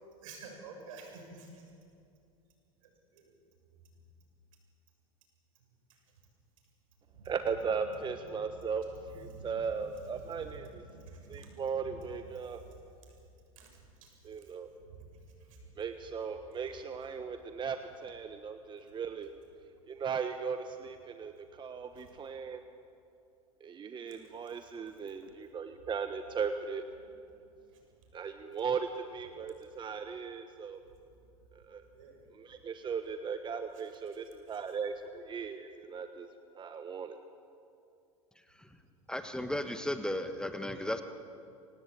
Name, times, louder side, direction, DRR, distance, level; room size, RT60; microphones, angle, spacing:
voice 1, 0.2-1.6 2.8-3.3 7.1-7.3 8.3-8.4 9.2-11.7 13.6-14.1 14.9-15.6 21.9-22.1 24.1-24.2 31.9-32.2, right 3 dB, 70° right, 2 dB, 7.3 m, -50 dB
voice 2, 7.2-10.9 11.3-12.6 14.2-14.7 15.8-19.3 19.9-22.6 23.6-26.8 28.1-30.8 31.5-31.9 32.3-36.3 36.5-37.2, right 6 dB, 25° right, 8 dB, 1.4 m, -37 dB
voice 3, 39.1-41.0, left 1 dB, 5° left, 8 dB, 1.4 m, -34 dB
25.5 x 18.5 x 8.6 m, 2.5 s
hypercardioid pair, 85°, 18 cm